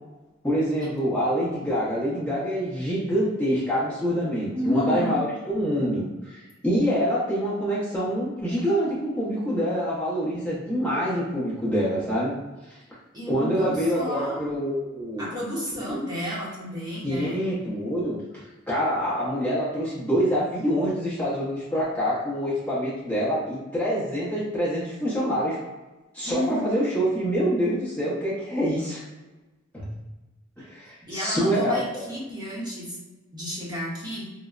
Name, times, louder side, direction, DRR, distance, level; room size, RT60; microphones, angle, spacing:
voice 1, 0.4-12.3 12.7-12.8 13.3-15.3 17.0-18.2 18.7-25.6 26.1-29.0 29.7-29.9 30.6-32.0, equal, 5° left, -9 dB, 0.8 m, -26 dB
voice 2, 4.5-5.2 13.1-14.4 15.2-17.4 26.2-26.9 30.6-30.7 31.1-33.0 33.3-34.3, equal, 20° right, -6 dB, 0.9 m, -31 dB
4.7 x 2.1 x 2.4 m, 1.1 s
head